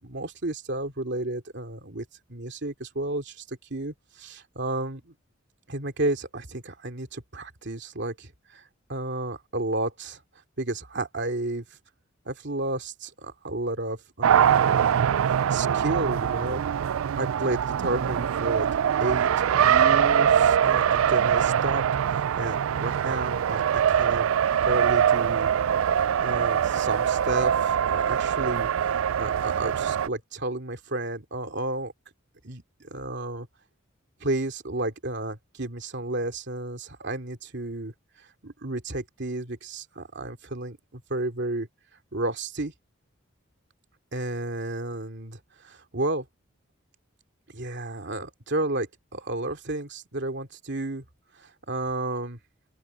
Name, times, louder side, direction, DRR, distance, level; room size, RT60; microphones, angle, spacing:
voice 1, 0.0-5.1 5.7-8.6 8.9-10.2 10.6-11.6 12.3-15.1 15.5-16.6 17.2-18.7 19.0-19.3 19.6-24.3 24.6-25.5 26.2-31.9 32.4-33.5 34.2-37.9 38.4-41.7 42.1-42.7 44.1-46.3 47.5-51.0 51.4-52.4, right 2 dB, 60° right, 2.7 m, -32 dB
Race car auto racing, 14.2-30.1, right 8 dB, 85° right, 0.4 m, -23 dB
open air
head